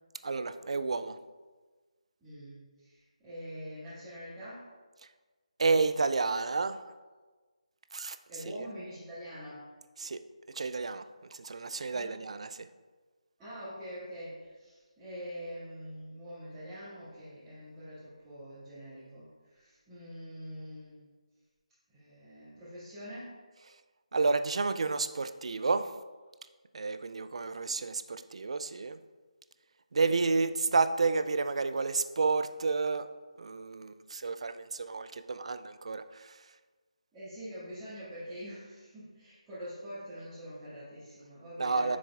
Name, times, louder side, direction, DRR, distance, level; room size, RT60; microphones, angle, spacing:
voice 1, 0.2-1.2 5.6-6.9 7.9-8.2 8.5-8.7 10.0-10.2 10.5-11.0 11.3-12.7 24.1-25.9 26.7-29.0 29.9-33.1 33.4-36.5 41.6-42.0, right 4 dB, 55° right, 11 dB, 0.4 m, -30 dB
voice 2, 2.2-4.6 8.3-9.7 11.9-12.1 13.4-21.1 21.9-23.3 37.1-42.0, equal, 10° right, -17 dB, 1.9 m, -45 dB
7.3 x 6.2 x 2.4 m, 1.3 s
figure-of-eight pair, 155°, 4 cm